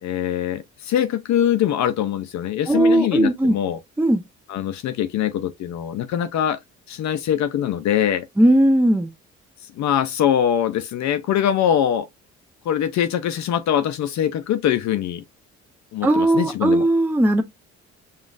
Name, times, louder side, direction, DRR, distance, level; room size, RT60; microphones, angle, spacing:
voice 1, 0.0-3.8 4.5-6.6 6.9-8.3 9.6-12.1 12.7-15.2 15.9-16.9, left 10 dB, 70° left, 0.5 m, -23 dB
voice 2, 2.7-3.5 4.0-4.2 8.4-9.1 16.0-17.4, right 1 dB, 5° right, 0.5 m, -17 dB
5.2 x 2.4 x 2.4 m
cardioid pair, 90°, 30 cm